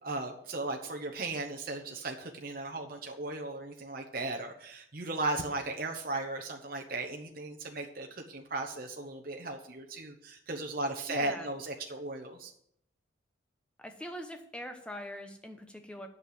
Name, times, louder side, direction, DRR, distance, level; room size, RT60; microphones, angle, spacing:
voice 1, 0.0-12.5, right 2 dB, 45° right, 3 dB, 0.9 m, -36 dB
voice 2, 11.1-11.5 13.8-16.1, equal, 5° left, 5 dB, 1.0 m, -42 dB
8.4 x 6.7 x 7.7 m, 0.71 s
head